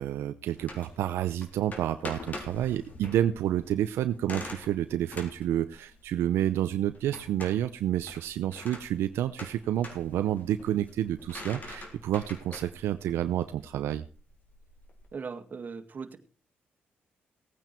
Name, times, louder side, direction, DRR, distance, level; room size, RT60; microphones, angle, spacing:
voice 1, 0.0-14.0, right 11 dB, 85° right, 10 dB, 0.6 m, -29 dB
sound 1, 0.6-15.1, left 2 dB, 40° left, 3.6 m, -45 dB
voice 2, 15.1-16.2, right 5 dB, 45° right, 7 dB, 2.0 m, -39 dB
17.5 x 9.2 x 4.4 m, 0.36 s
cardioid pair, 75°, 4 cm